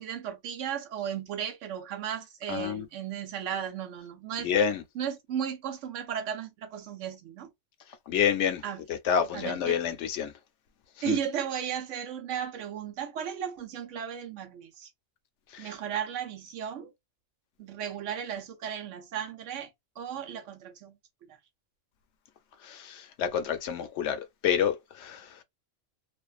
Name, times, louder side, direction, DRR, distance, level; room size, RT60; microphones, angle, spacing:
voice 1, 0.0-4.5 5.0-7.5 8.6-8.8 9.3-9.8 11.0-14.9 15.6-16.9 17.6-19.7 20.0-21.0 21.3-21.4, right 9 dB, 85° right, 1.0 m, -35 dB
voice 2, 2.5-2.9 4.4-4.8 8.1-8.6 8.9-10.3 11.1-11.2 15.5-15.7 22.6-25.4, left 8 dB, 75° left, 0.9 m, -28 dB
2.5 x 2.2 x 2.3 m
omnidirectional pair, 1.3 m